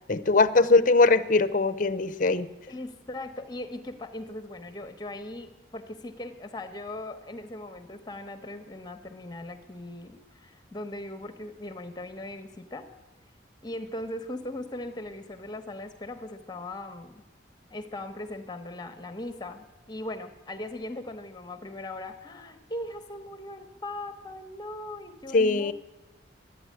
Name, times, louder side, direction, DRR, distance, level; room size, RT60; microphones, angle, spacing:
voice 1, 0.1-2.5 25.3-25.7, left 3 dB, 45° left, 14 dB, 0.5 m, -21 dB
voice 2, 2.7-12.9 13.6-17.2 17.7-25.7, left 1 dB, 20° left, 7 dB, 1.0 m, -39 dB
12.5 x 9.2 x 9.4 m, 1.1 s
head